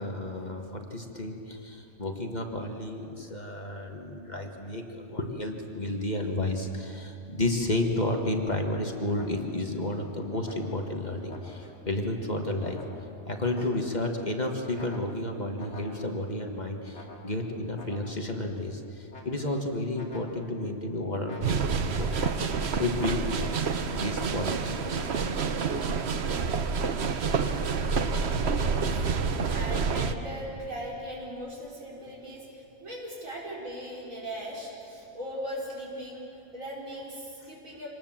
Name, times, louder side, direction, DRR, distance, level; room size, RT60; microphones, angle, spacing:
voice 1, 0.0-12.8 13.3-22.3 22.8-23.3 23.6-25.4 27.7-27.8 28.9-29.0, left 1 dB, 35° left, 3 dB, 1.6 m, -32 dB
sound 1, 8.4-9.8 10.4-11.9 12.6-14.1 14.8-16.4 16.9-18.4 19.1-19.7 19.9-20.7 21.2-23.6 24.3-24.7, left 2 dB, 55° left, 2.8 m, -48 dB
sound 2, 21.4-30.1, right 5 dB, 55° right, 1.1 m, -28 dB
voice 2, 28.6-28.9 29.5-36.3 36.5-37.9, equal, 80° right, -4 dB, 5.3 m, -39 dB
26.0 x 19.0 x 7.4 m, 2.8 s
omnidirectional pair, 1.4 m